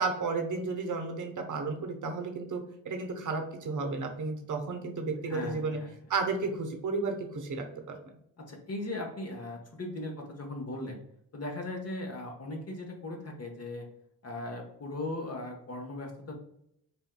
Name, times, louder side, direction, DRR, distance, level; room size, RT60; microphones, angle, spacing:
voice 1, 0.0-5.8 6.1-8.0, right 4 dB, 40° right, 4 dB, 0.8 m, -33 dB
voice 2, 5.3-5.9 8.5-11.0 11.3-13.9 14.2-16.3, left 2 dB, 30° left, 2 dB, 1.0 m, -38 dB
3.6 x 2.6 x 2.2 m, 0.74 s
hypercardioid pair, 50°, 49 cm